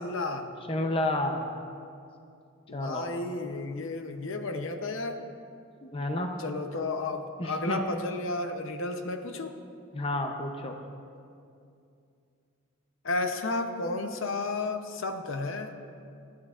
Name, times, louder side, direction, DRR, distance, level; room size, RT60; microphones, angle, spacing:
voice 1, 0.0-0.5 2.7-5.2 6.4-9.5 13.0-15.8, left 2 dB, 60° left, 6 dB, 0.7 m, -32 dB
voice 2, 0.7-1.5 2.7-3.1 5.8-6.3 7.4-7.8 9.9-10.8, left 1 dB, 25° left, 4 dB, 0.6 m, -30 dB
19.0 x 12.0 x 2.5 m, 2.5 s
head